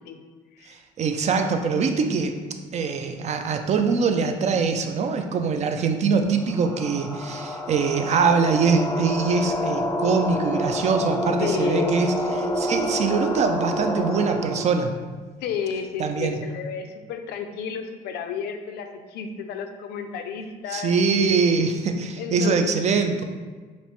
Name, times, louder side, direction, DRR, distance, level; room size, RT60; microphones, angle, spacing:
voice 1, 0.7-2.3 2.7-12.1 12.4-14.9 16.0-16.4 20.7-23.2, right 5 dB, 40° right, 6 dB, 0.4 m, -23 dB
sound 1, 6.4-14.8, equal, ahead, 0.8 m, -28 dB
voice 2, 11.4-12.0 15.4-21.0 22.2-23.2, left 7 dB, 75° left, 6 dB, 0.4 m, -32 dB
5.2 x 2.0 x 3.0 m, 1.4 s
cardioid pair, 110°, 17 cm